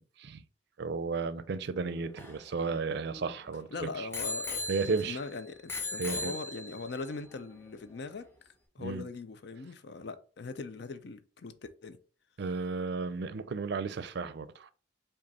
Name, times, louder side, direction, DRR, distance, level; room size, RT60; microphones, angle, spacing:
voice 1, 0.8-4.1 4.7-5.2 6.0-6.3 8.8-9.0 12.4-14.7, right 4 dB, 65° right, 0.4 m, -34 dB
Bicycle bell, 1.8-3.5 4.1-5.3 5.7-6.9 7.7-7.8, left 2 dB, 15° left, 0.9 m, -38 dB
voice 2, 3.7-8.3 8.7-11.5 11.8-12.0, left 3 dB, 65° left, 0.6 m, -41 dB
5.1 x 2.5 x 4.1 m
head